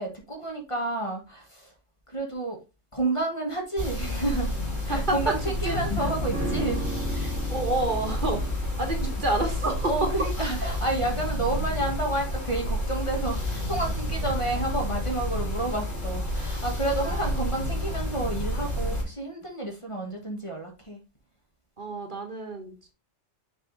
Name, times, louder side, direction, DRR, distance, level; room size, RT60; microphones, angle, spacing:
voice 1, 0.0-1.7 2.1-2.6 2.9-4.5 4.8-6.8 7.1-7.3 9.9-21.0, right 2 dB, 25° left, 1.6 m, -30 dB
sound 1, 3.8-19.0, left 1 dB, 65° left, 3.4 m, -30 dB
voice 2, 4.9-6.1 7.5-10.1 10.4-10.6 17.0-17.5 21.8-22.9, right 2 dB, 45° right, 1.5 m, -30 dB
sound 2, 6.3-15.7 16.0-16.1, right 2 dB, 70° right, 1.7 m, -39 dB
6.4 x 4.9 x 3.9 m
omnidirectional pair, 1.2 m